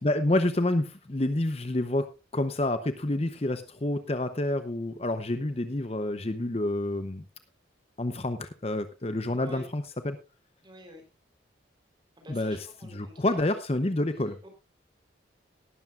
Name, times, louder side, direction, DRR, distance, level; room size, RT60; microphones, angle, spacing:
voice 1, 0.0-2.1 2.3-7.2 8.0-10.2 12.3-14.4, left 1 dB, 35° left, 10 dB, 0.8 m, -28 dB
voice 2, 10.6-11.0 12.2-13.5 14.4-14.5, equal, 25° right, 4 dB, 3.8 m, -48 dB
18.0 x 12.0 x 2.5 m, 0.28 s
head